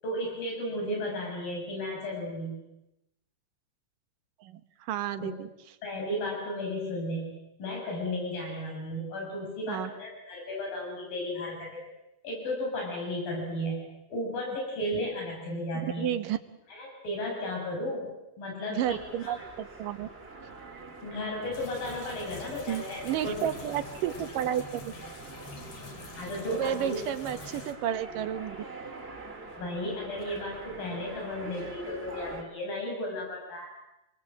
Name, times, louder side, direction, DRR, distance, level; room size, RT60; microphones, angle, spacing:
voice 1, 0.0-2.6 5.2-5.3 5.8-11.8 12.2-13.8 14.1-16.1 16.7-18.1 18.4-19.4 21.0-23.3 26.2-27.0 29.6-33.7, left 1 dB, 85° left, -1 dB, 9.2 m, -34 dB
voice 2, 4.4-5.5 9.7-9.9 16.0-16.4 18.7-20.1 22.7-24.9 26.5-28.6, right 11 dB, 75° right, 10 dB, 2.8 m, -32 dB
sound 1, 18.8-32.4, right 3 dB, 20° right, 2.1 m, -45 dB
sound 2, 21.5-27.7, left 4 dB, 45° left, 3.4 m, -46 dB
28.0 x 24.0 x 7.7 m, 0.91 s
omnidirectional pair, 4.0 m